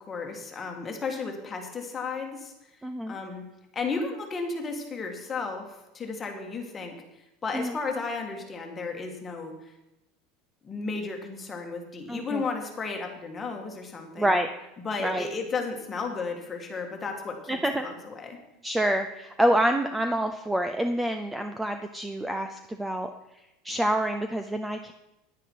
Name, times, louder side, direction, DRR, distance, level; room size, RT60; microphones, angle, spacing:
voice 1, 0.0-2.5 3.1-3.5 3.7-7.0 7.4-9.7 10.6-14.4 14.8-18.4, left 4 dB, 20° left, 2 dB, 1.7 m, -34 dB
voice 2, 2.8-3.2 7.5-7.8 12.1-12.4 14.2-14.5 15.0-15.3 17.5-17.9 18.6-23.1 23.6-24.9, right 1 dB, 5° right, 7 dB, 0.5 m, -27 dB
10.0 x 9.8 x 4.6 m, 0.93 s
supercardioid pair, 155°, 0 cm